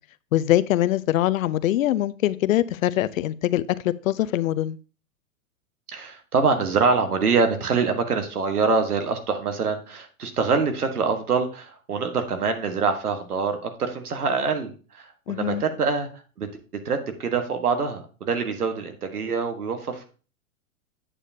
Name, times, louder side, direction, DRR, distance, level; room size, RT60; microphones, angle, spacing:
voice 1, 0.3-3.6 4.0-4.8 15.3-15.6, left 13 dB, 65° left, 0.6 m, -23 dB
voice 2, 5.9-16.5 16.8-20.1, right 5 dB, 85° right, 1.4 m, -25 dB
8.4 x 7.2 x 2.7 m
hypercardioid pair, 115°, 44 cm